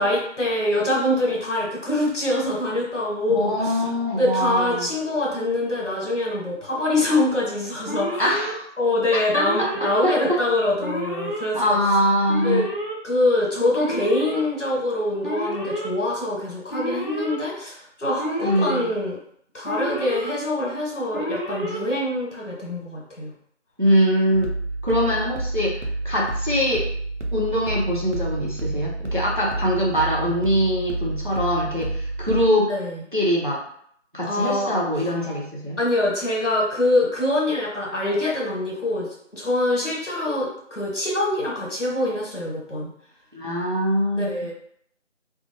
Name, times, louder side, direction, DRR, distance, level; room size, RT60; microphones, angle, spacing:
voice 1, 0.0-3.7 4.1-8.3 8.8-11.8 12.4-12.6 13.0-19.2 19.5-23.3 32.7-33.0 34.2-34.7 35.8-42.9 44.1-44.5, left 1 dB, 75° left, -4 dB, 1.2 m, -24 dB
voice 2, 3.3-4.9 8.2-8.7 9.3-10.4 11.5-12.6 18.4-18.9 23.8-24.5 24.8-26.8 27.3-32.7 33.1-33.6 34.1-35.8 43.3-44.3, equal, 45° right, -3 dB, 0.6 m, -23 dB
Alarm, 7.9-8.5 9.3-10.0 10.8-11.5 12.3-12.9 13.7-14.4 15.2-15.9 16.7-17.4 18.2-18.8 19.6-20.3 21.1-21.8, equal, 45° left, 0.9 m, -30 dB
sound 1, 24.3-32.5, right 2 dB, 75° right, 0.7 m, -29 dB
2.6 x 2.0 x 2.8 m, 0.66 s
figure-of-eight pair, 175°, 37 cm